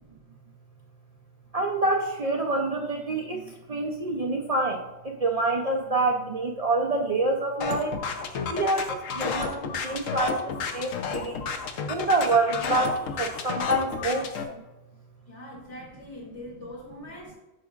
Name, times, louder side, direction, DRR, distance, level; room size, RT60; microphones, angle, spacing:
voice 1, 1.5-3.4 3.7-4.8 5.2-7.9 8.5-10.4 10.7-11.4 11.9-14.3, right 2 dB, 75° right, 1 dB, 0.3 m, -26 dB
sound 1, 7.6-14.4, left 5 dB, 85° left, 1.1 m, -31 dB
voice 2, 15.3-17.4, left 1 dB, 25° left, -5 dB, 2.4 m, -42 dB
8.8 x 6.1 x 2.4 m, 1.0 s
omnidirectional pair, 1.3 m